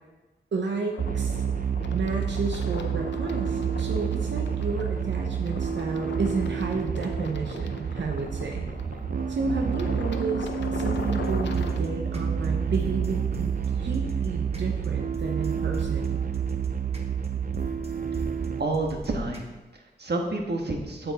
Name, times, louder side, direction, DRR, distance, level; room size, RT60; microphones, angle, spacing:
voice 1, 0.5-1.4 1.9-8.7 9.3-16.2, right 4 dB, 85° right, 1 dB, 0.8 m, -32 dB
sound 1, 0.9-11.8, left 5 dB, 85° left, 0.6 m, -40 dB
sound 2, 1.0-18.6, right 7 dB, 50° right, 0.5 m, -29 dB
sound 3, 4.6-19.6, right 1 dB, 35° right, 1.3 m, -44 dB
voice 2, 18.6-21.1, right 2 dB, 70° right, 1 dB, 1.4 m, -29 dB
7.8 x 7.0 x 4.1 m, 1.1 s
cardioid pair, 55°, 18 cm